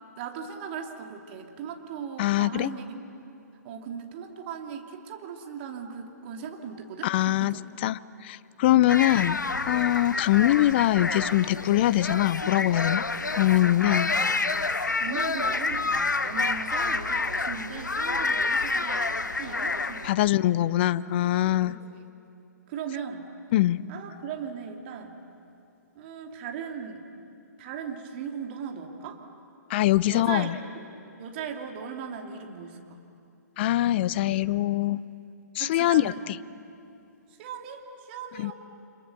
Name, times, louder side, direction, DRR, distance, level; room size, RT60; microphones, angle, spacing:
voice 1, 0.1-3.0 3.6-7.7 8.7-9.0 15.0-20.3 21.6-22.0 22.7-23.3 23.9-25.2 25.9-27.1 27.6-29.2 30.1-30.8 31.2-33.0 35.6-36.3 37.3-38.5, right 7 dB, 35° right, 3 dB, 2.9 m, -38 dB
voice 2, 2.2-2.7 7.0-7.6 7.8-9.4 9.7-13.1 13.3-14.1 20.0-21.8 23.5-23.8 29.7-30.6 33.6-35.0 35.5-36.1 38.4-38.5, left 15 dB, 35° left, 18 dB, 0.6 m, -23 dB
sound 1, 8.9-20.1, left 3 dB, 80° left, 1.1 m, -28 dB
29.5 x 27.0 x 6.8 m, 2.6 s
figure-of-eight pair, 125°, 10 cm